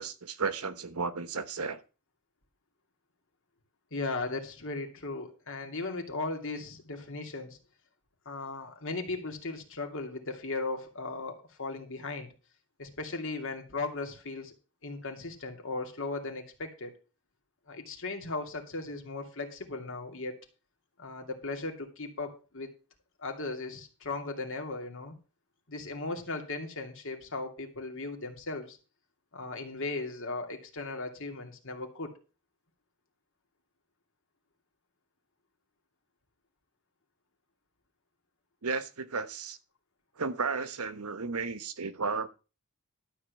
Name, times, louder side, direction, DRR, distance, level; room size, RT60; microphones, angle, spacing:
voice 1, 0.0-1.8 38.6-39.6 40.2-42.3, right 4 dB, 85° right, 1.2 m, -33 dB
voice 2, 3.9-7.6 8.3-12.3 12.8-14.5 14.8-16.9 17.7-20.4 21.0-22.7 23.2-25.1 25.7-28.8 29.3-32.1, left 3 dB, 60° left, 2.6 m, -37 dB
12.5 x 4.4 x 8.2 m
head